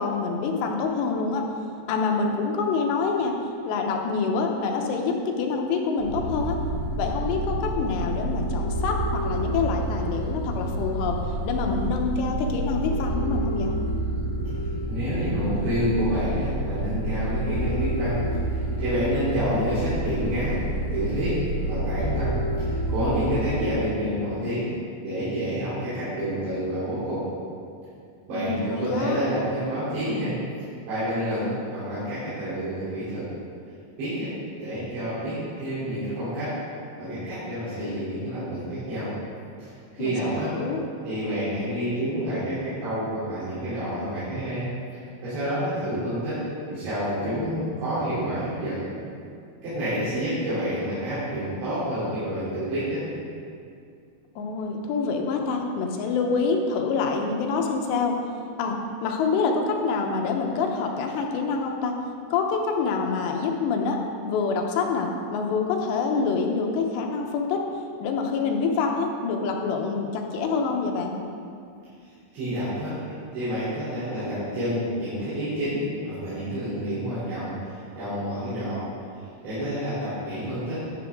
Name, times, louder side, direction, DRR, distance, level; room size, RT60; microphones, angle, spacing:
voice 1, 0.0-1.4 1.9-3.3 3.7-6.6 7.0-11.2 11.4-13.7 28.3-29.2 40.0-40.8 54.4-58.2 58.6-61.9 62.3-64.0 64.2-67.6 68.0-71.2, left 4 dB, 80° left, 2 dB, 3.1 m, -26 dB
sound 1, 6.0-23.7, right 1 dB, 65° right, 1.3 m, -28 dB
voice 2, 14.9-18.2 18.5-20.6 20.9-24.7 25.0-27.2 28.3-30.3 30.9-33.3 34.0-34.3 34.6-36.5 37.0-39.1 39.6-40.5 41.0-44.6 45.2-46.4 46.6-48.9 49.6-53.0 72.0-77.5 78.0-78.9 79.1-80.8, equal, 90° right, -14 dB, 5.7 m, -28 dB
11.5 x 11.0 x 3.7 m, 2.4 s
omnidirectional pair, 5.0 m